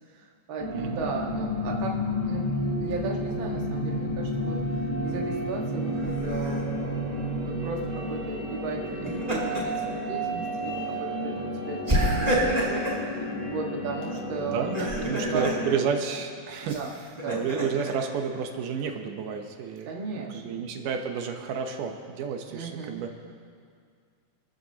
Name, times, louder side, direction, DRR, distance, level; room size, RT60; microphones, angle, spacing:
voice 1, 0.1-2.5 2.8-16.0 16.7-17.4 19.9-20.6 22.5-23.0, right 4 dB, 45° right, -1 dB, 1.9 m, -36 dB
sound 1, 0.6-15.7, equal, 10° left, 4.2 m, -31 dB
voice 2, 0.7-1.1 14.5-14.8 15.1-16.8 17.3-19.9 20.2-23.2, right 6 dB, 85° right, 4 dB, 2.6 m, -31 dB
Laughter, 6.0-6.6 8.9-9.8 10.2-10.4 11.9-13.0 14.6-15.6 16.7-17.9, equal, 15° right, 2.4 m, -28 dB
26.5 x 14.0 x 2.9 m, 2.2 s
omnidirectional pair, 3.7 m